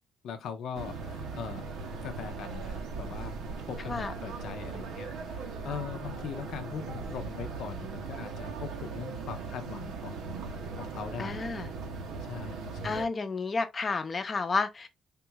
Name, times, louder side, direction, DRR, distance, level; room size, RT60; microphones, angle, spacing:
voice 1, 0.2-3.3 3.7-11.4 12.2-13.1, left 7 dB, 75° left, 0.6 m, -41 dB
sound 1, 0.7-13.1, right 4 dB, 85° right, 0.7 m, -39 dB
voice 2, 11.2-11.7 12.8-14.9, left 4 dB, 35° left, 0.6 m, -31 dB
3.6 x 2.3 x 2.9 m
cardioid pair, 90°, 0 cm